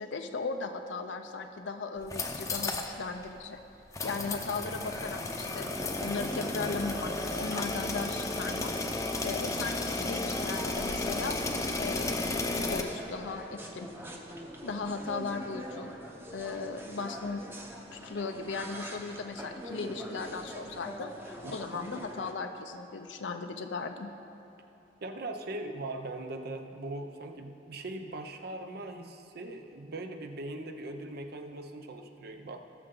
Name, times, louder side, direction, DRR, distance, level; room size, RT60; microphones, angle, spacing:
voice 1, 0.0-3.6 4.0-8.7 9.2-11.4 11.8-12.2 12.5-13.9 14.6-15.9 16.3-17.4 17.9-24.1, left 4 dB, 85° left, 5 dB, 0.5 m, -37 dB
sound 1, 2.0-2.9 3.2-3.3 3.9-12.8, left 2 dB, 20° left, 0.7 m, -33 dB
sound 2, 4.2-22.3, equal, 15° right, 0.9 m, -44 dB
voice 2, 21.4-21.8 25.0-32.6, right 2 dB, 60° right, 6 dB, 0.7 m, -40 dB
18.5 x 6.7 x 3.8 m, 2.8 s
head